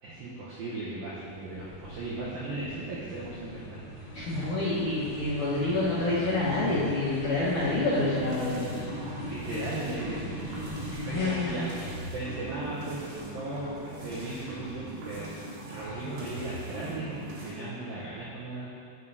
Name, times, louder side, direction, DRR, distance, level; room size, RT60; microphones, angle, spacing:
voice 1, 0.0-3.8 9.2-10.3 11.0-15.3 15.6-18.7, right 2 dB, 90° right, -7 dB, 2.0 m, -37 dB
sound 1, 1.1-15.6, equal, 60° left, 1.5 m, -41 dB
voice 2, 4.1-8.7 11.1-11.7, left 2 dB, 85° left, -11 dB, 1.7 m, -28 dB
sound 2, 8.0-17.5, right 1 dB, 70° right, 3.5 m, -41 dB
10.5 x 7.5 x 2.8 m, 2.4 s
omnidirectional pair, 5.6 m